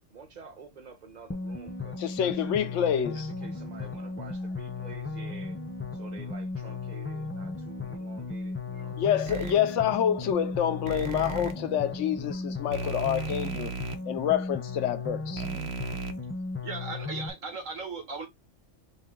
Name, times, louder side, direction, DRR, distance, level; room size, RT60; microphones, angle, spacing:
voice 1, 0.1-2.6 3.1-5.6 5.9-9.3 9.8-11.3, right 5 dB, 35° right, 1.1 m, -49 dB
sound 1, 1.3-17.3, left 3 dB, 15° left, 0.5 m, -36 dB
voice 2, 2.0-3.3 9.0-13.7 14.1-15.5, left 9 dB, 75° left, 1.0 m, -27 dB
sound 2, 9.3-9.5 10.9-11.5 12.7-14.0 15.4-16.1, right 7 dB, 60° right, 0.9 m, -36 dB
voice 3, 16.6-18.3, right 4 dB, 90° right, 2.0 m, -37 dB
5.3 x 2.3 x 3.7 m
omnidirectional pair, 1.3 m